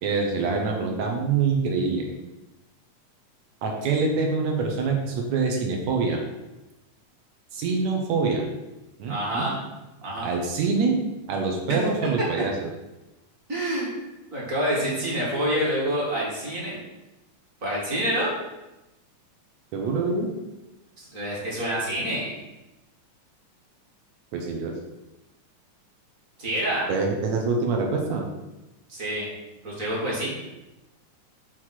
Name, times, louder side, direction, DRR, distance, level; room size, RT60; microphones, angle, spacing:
voice 1, 0.0-2.0 3.6-6.2 7.5-8.4 9.0-9.5 10.2-11.0 11.3-12.7 19.7-20.3 24.3-24.7 26.9-28.2, right 4 dB, 70° right, 1 dB, 2.0 m, -25 dB
voice 2, 9.1-9.5 10.0-10.3 13.5-13.9 14.3-16.8 17.6-18.3 21.0-22.3 26.4-26.9 28.9-29.3 29.6-30.3, equal, 35° right, -5 dB, 1.5 m, -27 dB
6.4 x 3.1 x 5.7 m, 1.0 s
omnidirectional pair, 3.5 m